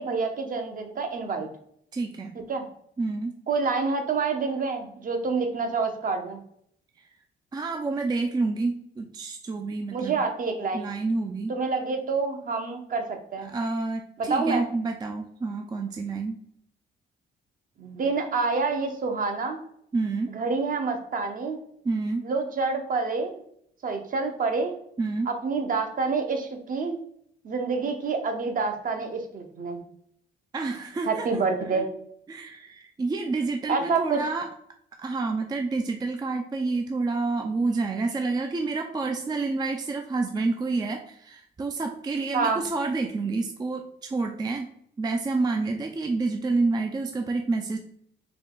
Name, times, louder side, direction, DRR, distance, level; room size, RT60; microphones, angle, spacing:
voice 1, 0.0-1.5 2.5-2.7 3.5-6.4 9.9-10.9 11.5-13.5 14.2-14.7 17.8-19.6 20.3-21.6 22.2-23.4 23.8-24.7 25.3-27.0 27.4-29.8 31.1-31.9 33.7-34.2 42.3-42.6, right 4 dB, 45° right, 5 dB, 0.7 m, -27 dB
voice 2, 1.9-2.4 3.0-3.4 7.5-10.2 10.7-11.5 13.5-16.4 19.9-20.3 21.8-22.3 25.0-25.3 30.5-31.3 31.6-31.9 32.3-34.5 35.0-44.7 45.0-47.8, right 3 dB, 20° right, 4 dB, 0.4 m, -28 dB
4.0 x 2.2 x 3.7 m, 0.68 s
cardioid pair, 90°, 20 cm